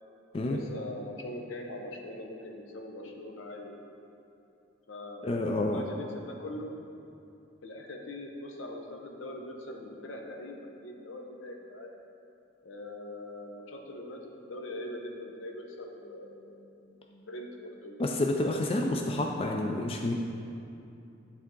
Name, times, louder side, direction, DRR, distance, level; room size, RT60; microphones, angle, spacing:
voice 1, 0.4-3.7 4.9-6.8 7.6-11.9 12.6-18.0 18.8-18.9, left 1 dB, 75° left, 1 dB, 0.8 m, -42 dB
voice 2, 5.2-5.8 18.0-20.1, left 1 dB, 30° left, 1 dB, 0.3 m, -29 dB
10.5 x 3.6 x 3.7 m, 2.7 s
head